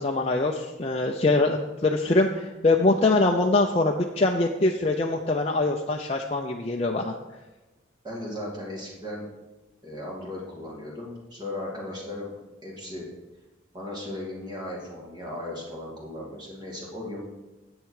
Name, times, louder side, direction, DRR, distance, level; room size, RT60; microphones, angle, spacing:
voice 1, 0.0-7.1, left 2 dB, 30° left, 1 dB, 0.5 m, -23 dB
voice 2, 8.0-9.2 9.8-12.3 12.6-13.1 13.7-17.2, left 1 dB, 20° right, -3 dB, 2.4 m, -36 dB
9.9 x 8.1 x 4.8 m, 1.1 s
head